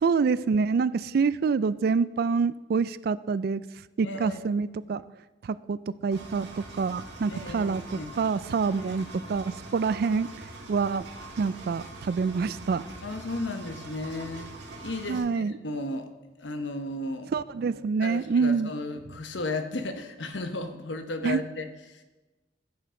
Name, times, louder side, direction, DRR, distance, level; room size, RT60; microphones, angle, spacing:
voice 1, 0.0-3.6 4.0-5.0 5.4-10.3 10.7-11.1 11.4-12.8 15.1-15.5 17.3-18.7 21.2-21.4, right 5 dB, 55° right, 17 dB, 0.3 m, -26 dB
voice 2, 4.0-4.4 7.3-8.1 8.8-9.0 13.0-14.5 14.8-16.1 16.4-17.3 18.0-22.0, left 2 dB, 85° left, 7 dB, 1.0 m, -34 dB
Engine, 6.1-15.2, right 2 dB, 80° right, 1.8 m, -43 dB
14.0 x 7.9 x 3.8 m, 1.1 s
head